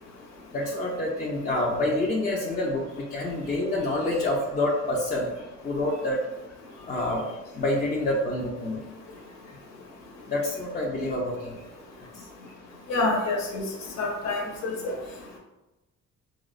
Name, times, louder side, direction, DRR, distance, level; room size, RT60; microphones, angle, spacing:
voice 1, 0.5-6.2 6.8-8.9 10.3-11.7 12.0-12.2, left 1 dB, 25° left, -4 dB, 0.5 m, -28 dB
voice 2, 12.9-13.6 14.0-14.9, left 2 dB, 60° left, 0 dB, 0.8 m, -27 dB
4.1 x 2.0 x 2.4 m, 1.0 s
cardioid pair, 90°, 30 cm